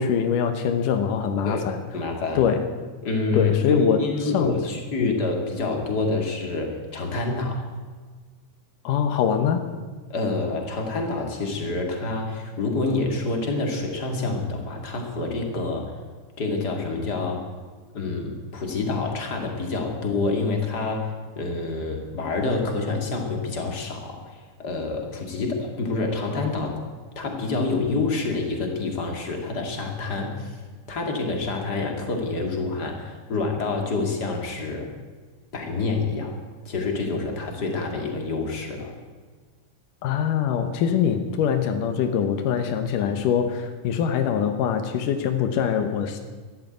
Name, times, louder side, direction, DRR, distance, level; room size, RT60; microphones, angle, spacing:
voice 1, 0.0-1.8 2.4-2.7 3.3-4.0 4.3-4.6 5.0-5.1 8.8-9.6 40.0-46.2, left 8 dB, 90° left, 7 dB, 2.7 m, -23 dB
voice 2, 1.9-2.5 3.0-7.6 10.1-16.0 16.4-17.5 17.9-26.8 27.2-30.6 30.9-34.9 35.5-36.3 36.7-39.0 43.0-43.1, left 3 dB, 35° left, 2 dB, 2.5 m, -27 dB
13.5 x 12.0 x 9.0 m, 1.5 s
omnidirectional pair, 3.6 m